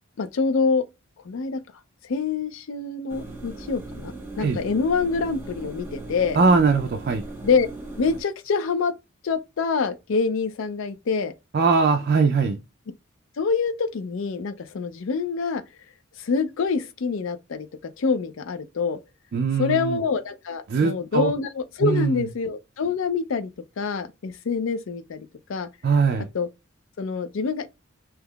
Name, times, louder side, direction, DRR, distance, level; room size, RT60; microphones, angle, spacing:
voice 1, 0.2-0.8 1.3-1.6 2.1-6.4 7.4-7.7 8.0-8.9 9.2-11.3 13.4-15.6 16.2-17.7 18.0-19.0 19.6-23.5 23.8-25.7 26.3-26.5 27.0-27.7, left 5 dB, 65° left, 0.4 m, -26 dB
sound 1, 3.1-8.2, right 2 dB, 10° right, 0.8 m, -38 dB
voice 2, 6.3-7.2 11.5-12.6 19.3-20.0 20.7-21.3 21.8-22.3 25.8-26.3, right 4 dB, 45° right, 0.3 m, -21 dB
3.6 x 2.8 x 2.2 m
head